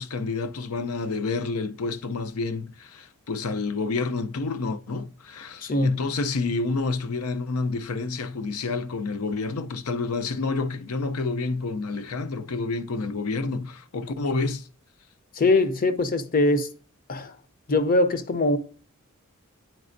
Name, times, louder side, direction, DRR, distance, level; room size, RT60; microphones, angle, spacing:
voice 1, 0.0-14.7, left 3 dB, 85° left, 0.6 m, -29 dB
voice 2, 5.6-6.0 15.3-16.7 17.1-17.4 17.7-18.6, left 2 dB, 40° left, 0.6 m, -22 dB
9.1 x 4.2 x 2.6 m
head